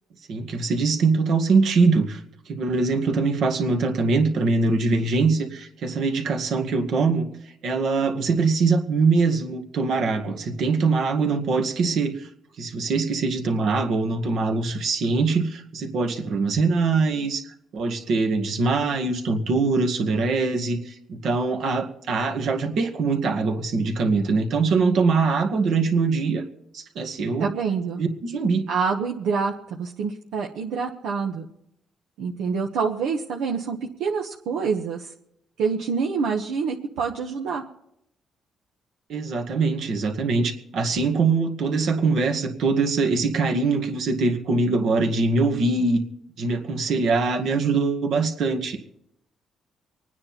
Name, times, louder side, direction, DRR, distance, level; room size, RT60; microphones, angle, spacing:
voice 1, 0.3-2.2 2.5-7.3 7.6-12.3 12.6-17.4 17.7-26.4 26.7-27.5 28.0-28.7 39.1-46.0 46.4-48.8, right 4 dB, 70° right, 3 dB, 2.0 m, -23 dB
voice 2, 27.4-28.0 28.7-31.5 32.2-35.1 35.6-37.7, right 5 dB, 90° right, 0 dB, 1.3 m, -26 dB
25.5 x 9.7 x 4.4 m, 0.77 s
cardioid pair, 90°, 0 cm